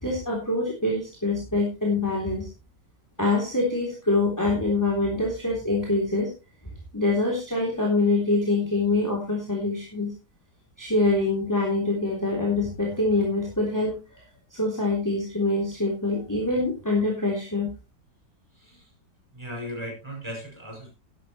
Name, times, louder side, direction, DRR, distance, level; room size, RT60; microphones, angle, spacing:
voice 1, 0.0-2.5 3.2-6.3 6.9-10.1 10.8-14.2 14.5-17.7, left 2 dB, 10° left, -3 dB, 3.2 m, -25 dB
voice 2, 18.6-18.9 19.3-20.9, equal, 15° right, -2 dB, 6.6 m, -37 dB
12.0 x 12.0 x 3.2 m, 0.29 s
omnidirectional pair, 1.9 m